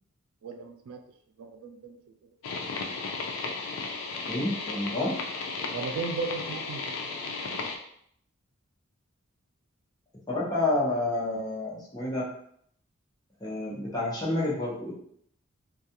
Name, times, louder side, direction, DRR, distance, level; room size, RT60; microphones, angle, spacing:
voice 1, 0.4-1.0 1.4-2.0 5.7-6.9 7.3-7.7, right 4 dB, 85° right, 5 dB, 0.4 m, -36 dB
sound 1, 2.4-7.8, left 4 dB, 70° left, 0.4 m, -34 dB
voice 2, 4.3-5.1 10.3-12.3 13.4-14.9, left 2 dB, 20° left, -6 dB, 0.8 m, -29 dB
2.3 x 2.3 x 2.8 m, 0.66 s
head